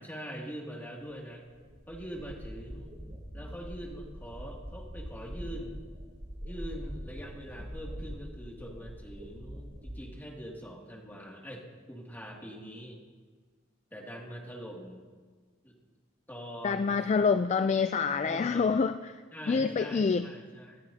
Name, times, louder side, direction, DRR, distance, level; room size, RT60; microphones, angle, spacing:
voice 1, 0.0-1.4 1.9-3.0 3.3-5.8 6.4-13.0 13.9-15.0 15.6-15.7 16.3-17.1 18.2-18.7 19.3-20.8, equal, 10° left, -3 dB, 2.4 m, -43 dB
sound 1, 1.1-1.2 1.5-10.0, equal, 35° right, 4.2 m, -43 dB
voice 2, 16.6-19.2 19.5-20.3, left 5 dB, 35° left, 10 dB, 0.3 m, -27 dB
25.5 x 12.5 x 2.8 m, 1.5 s
head